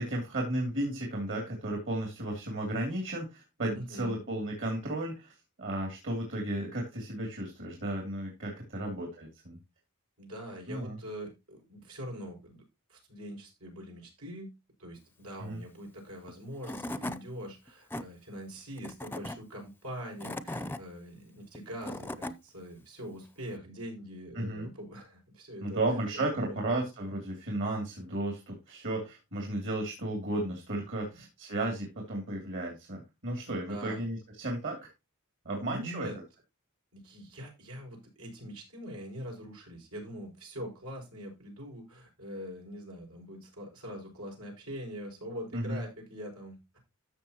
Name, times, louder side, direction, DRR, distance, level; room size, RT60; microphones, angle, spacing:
voice 1, 0.0-5.3 5.6-9.6 10.7-10.9 15.4-15.6 24.3-24.7 25.6-34.8 35.4-36.1 45.5-45.8, right 1 dB, 60° right, 0 dB, 2.8 m, -34 dB
voice 2, 3.8-4.2 8.7-8.9 10.2-12.6 12.9-14.5 14.8-26.6 31.1-31.2 33.5-34.0 35.4-36.2 36.9-46.8, equal, 85° right, 0 dB, 5.9 m, -43 dB
Tools / Wood, 16.3-16.4 16.6-17.2 17.7-18.0 18.8-19.4 20.0-20.8 21.5-22.3, left 1 dB, 10° left, 0.6 m, -37 dB
13.5 x 6.5 x 2.9 m, 0.24 s
head